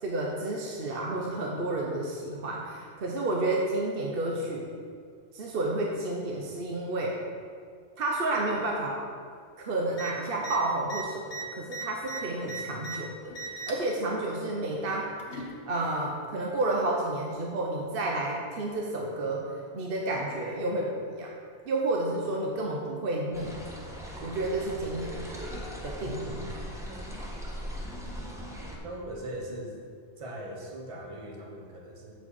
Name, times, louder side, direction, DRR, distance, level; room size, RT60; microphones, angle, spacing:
voice 1, 0.0-4.7 5.3-7.2 8.0-9.0 9.6-15.1 15.7-21.3 21.7-23.6 24.2-26.5, right 2 dB, 55° right, -1 dB, 1.0 m, -31 dB
sound 1, 9.9-10.1 10.4-10.6 10.8-13.0 13.3-13.9 14.9-15.5 16.6-16.7, right 3 dB, 75° left, 1.5 m, -38 dB
sound 2, 23.3-28.8, equal, 5° right, 1.0 m, -39 dB
voice 2, 26.0-26.6 28.8-29.8 30.2-32.2, right 1 dB, 30° right, 0 dB, 1.1 m, -40 dB
7.7 x 4.2 x 6.9 m, 2.1 s
omnidirectional pair, 1.2 m